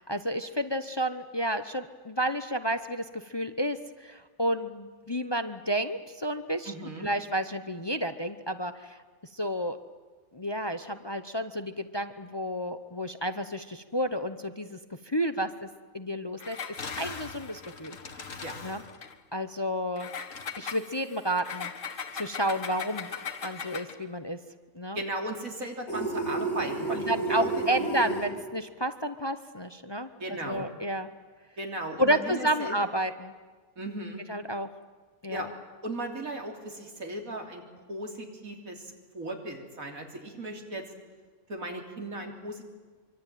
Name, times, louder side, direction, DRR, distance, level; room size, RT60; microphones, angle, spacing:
voice 1, 0.0-6.7 7.0-9.0 9.3-9.8 10.3-14.8 15.0-15.7 15.9-16.6 16.9-18.8 19.3-20.1 20.6-21.7 22.1-23.1 23.4-24.4 24.7-25.0 26.9-31.1 32.0-33.3 34.3-34.7 35.2-35.5, equal, 25° left, 10 dB, 0.8 m, -31 dB
voice 2, 6.7-7.1 18.4-18.6 24.9-27.9 30.2-30.7 31.6-32.8 33.8-34.2 35.3-35.5 35.8-37.6 37.9-40.8 41.5-42.6, right 1 dB, 85° right, 2 dB, 3.8 m, -36 dB
Engine, 16.4-19.1 20.0-24.0, left 5 dB, 70° left, 2.1 m, -39 dB
sound 1, 25.9-28.3, right 3 dB, 50° left, 6.2 m, -31 dB
25.0 x 25.0 x 9.2 m, 1.4 s
omnidirectional pair, 1.4 m